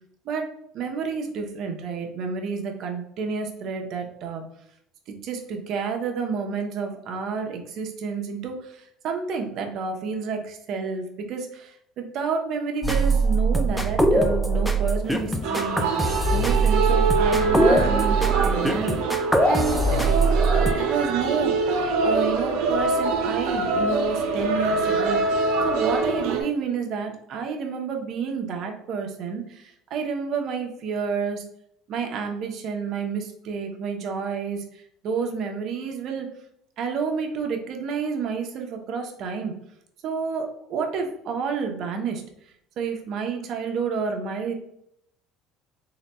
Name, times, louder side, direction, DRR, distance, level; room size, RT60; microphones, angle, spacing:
voice 1, 0.7-4.4 5.1-19.0 19.4-25.2 25.6-31.4 31.9-36.3 36.8-39.5 40.0-42.2 42.8-44.5, right 5 dB, 55° right, 3 dB, 0.8 m, -29 dB
sound 1, 12.8-20.7, right 2 dB, ahead, 0.4 m, -22 dB
sound 2, 15.4-26.4, right 3 dB, 85° right, 0.7 m, -24 dB
3.9 x 2.2 x 4.1 m, 0.74 s
cardioid pair, 130°, 0 cm